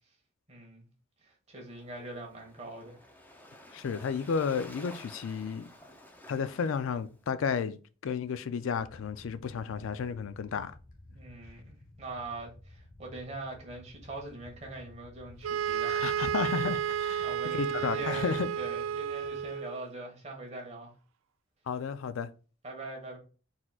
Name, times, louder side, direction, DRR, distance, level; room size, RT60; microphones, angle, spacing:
voice 1, 0.5-0.8 1.2-3.0 11.1-16.0 17.2-20.9 22.6-23.2, right 2 dB, 30° right, 1.4 m, -42 dB
Waves surf, 1.6-7.3, left 1 dB, 10° left, 0.6 m, -52 dB
voice 2, 3.7-5.7 6.3-10.7 15.9-18.5 21.7-22.3, left 6 dB, 70° left, 0.4 m, -32 dB
sound 1, 8.7-19.5, left 1 dB, 40° left, 1.1 m, -54 dB
sound 2, 15.4-19.8, right 9 dB, 70° right, 0.3 m, -32 dB
4.3 x 4.2 x 2.4 m
head